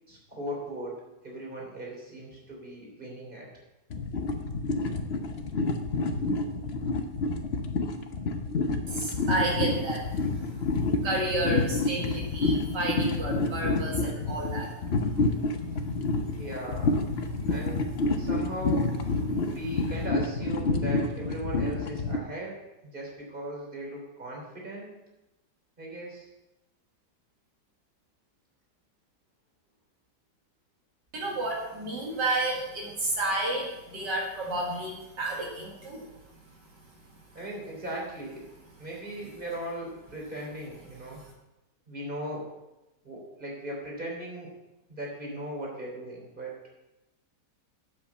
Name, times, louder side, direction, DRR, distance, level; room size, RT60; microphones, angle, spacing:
voice 1, 0.1-1.0 1.2-3.5 16.4-17.0 17.5-17.9 18.2-18.9 19.5-22.6 22.9-24.9 25.8-26.3 37.3-38.4 38.8-41.2 41.9-42.5 43.0-44.5 44.9-46.5, right 1 dB, 30° right, -2 dB, 3.5 m, -38 dB
sound 1, 3.9-22.2, left 3 dB, 45° left, 0.9 m, -28 dB
voice 2, 8.9-10.5 11.0-14.7 19.4-19.5 31.1-36.1, right 2 dB, 75° right, -3 dB, 2.6 m, -31 dB
8.4 x 8.0 x 7.1 m, 0.96 s
omnidirectional pair, 1.9 m